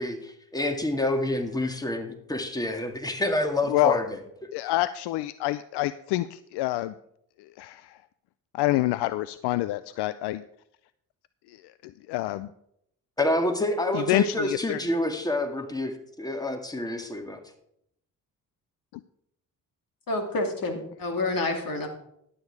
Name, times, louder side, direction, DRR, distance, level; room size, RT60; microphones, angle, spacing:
voice 1, 0.0-4.0 13.2-17.4, left 1 dB, 10° left, 6 dB, 1.9 m, -28 dB
voice 2, 4.5-6.9 7.4-8.0 8.5-10.4 11.5-11.6 11.8-12.5 13.9-14.8, left 16 dB, 75° left, 15 dB, 0.5 m, -27 dB
voice 3, 20.1-21.9, left 2 dB, 55° left, 4 dB, 2.6 m, -28 dB
11.5 x 8.7 x 4.7 m, 0.75 s
supercardioid pair, 60°, 40 cm